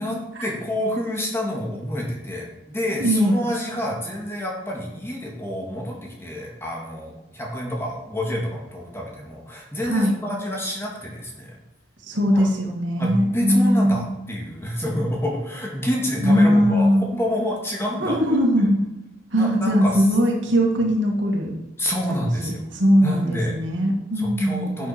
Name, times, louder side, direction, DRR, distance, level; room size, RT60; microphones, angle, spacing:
voice 1, 0.4-11.5 12.3-12.5 13.0-18.2 19.4-20.0 21.8-22.6 23.0-23.5 24.2-24.9, equal, 15° left, -1 dB, 2.1 m, -28 dB
voice 2, 3.0-3.4 9.8-10.2 12.0-14.1 16.2-17.1 18.0-18.8 19.3-21.5 22.2-24.9, equal, 75° right, 1 dB, 2.3 m, -20 dB
11.0 x 7.3 x 4.5 m, 0.98 s
head